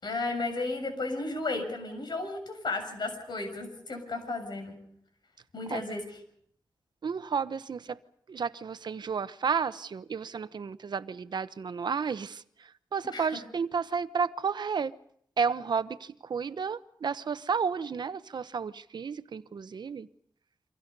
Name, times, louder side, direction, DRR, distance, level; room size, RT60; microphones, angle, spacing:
voice 1, 0.0-4.8 5.5-6.0 13.1-13.4, left 3 dB, 80° left, 6.8 m, -34 dB
voice 2, 7.0-8.0 8.3-14.9 15.4-20.1, right 6 dB, 75° right, 0.9 m, -32 dB
29.0 x 25.0 x 5.4 m
wide cardioid pair, 95°, 7 cm